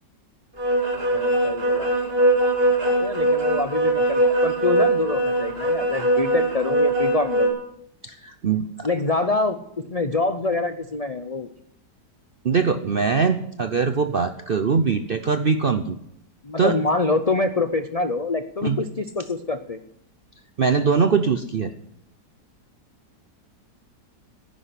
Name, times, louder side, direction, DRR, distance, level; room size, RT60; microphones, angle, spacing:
sound 1, 0.6-7.5, right 1 dB, 35° right, 3.1 m, -21 dB
voice 1, 1.1-2.3 3.0-7.5 8.8-11.5 16.4-19.8, left 3 dB, 60° left, 10 dB, 0.4 m, -26 dB
voice 2, 8.0-8.9 12.4-16.0 16.6-16.7 18.6-18.8 20.6-21.7, right 5 dB, 60° right, 9 dB, 0.6 m, -22 dB
11.0 x 10.0 x 9.6 m, 0.74 s
omnidirectional pair, 1.8 m